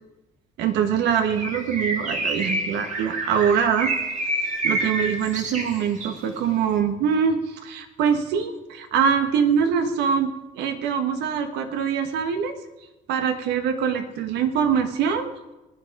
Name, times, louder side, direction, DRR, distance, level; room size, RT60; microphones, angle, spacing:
voice 1, 0.6-3.9 4.6-12.6 13.1-15.3, right 7 dB, 85° right, 7 dB, 1.4 m, -23 dB
Bird, 1.3-6.2, right 2 dB, 45° right, 2.1 m, -28 dB
19.5 x 9.7 x 4.8 m, 1.0 s
cardioid pair, 110°, 17 cm